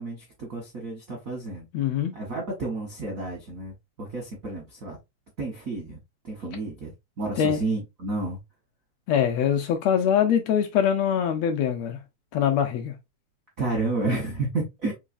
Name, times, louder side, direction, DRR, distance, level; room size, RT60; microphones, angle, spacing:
voice 1, 0.0-1.6 2.1-5.0 5.4-6.0 6.2-6.9 7.2-8.4 13.6-14.9, right 2 dB, 65° right, 0.8 m, -31 dB
voice 2, 1.7-2.1 7.4-7.6 9.1-12.0 12.3-12.9, left 8 dB, 80° left, 1.6 m, -23 dB
4.7 x 3.1 x 2.5 m
omnidirectional pair, 3.3 m